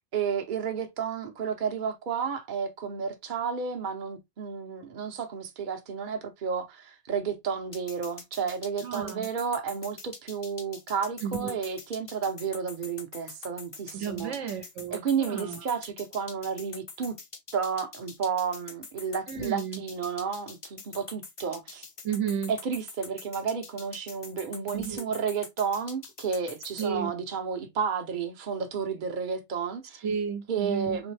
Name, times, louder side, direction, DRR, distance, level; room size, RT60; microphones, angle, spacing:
voice 1, 0.0-14.3 14.9-17.2 17.5-21.9 22.5-30.0 30.5-31.1, right 6 dB, 45° right, 0.9 m, -32 dB
sound 1, 7.7-26.9, left 4 dB, 40° left, 0.5 m, -44 dB
voice 2, 8.8-9.3 11.2-11.6 13.9-15.6 19.3-19.8 22.0-22.5 24.7-25.1 26.8-27.1 30.0-31.0, right 7 dB, 80° right, 1.1 m, -32 dB
4.1 x 3.2 x 3.1 m
omnidirectional pair, 1.2 m